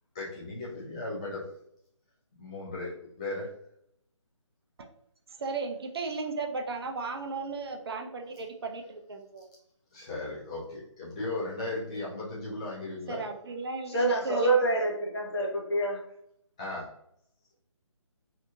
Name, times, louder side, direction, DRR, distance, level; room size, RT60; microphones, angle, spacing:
voice 1, 0.1-1.5 2.4-3.5 9.9-13.2 16.6-16.9, left 2 dB, 10° left, -7 dB, 0.3 m, -36 dB
voice 2, 5.4-9.5 13.1-14.5, right 4 dB, 50° right, 3 dB, 0.5 m, -35 dB
voice 3, 13.9-16.0, right 2 dB, 55° left, -1 dB, 1.0 m, -26 dB
2.8 x 2.6 x 2.3 m, 0.75 s
figure-of-eight pair, 155°, 17 cm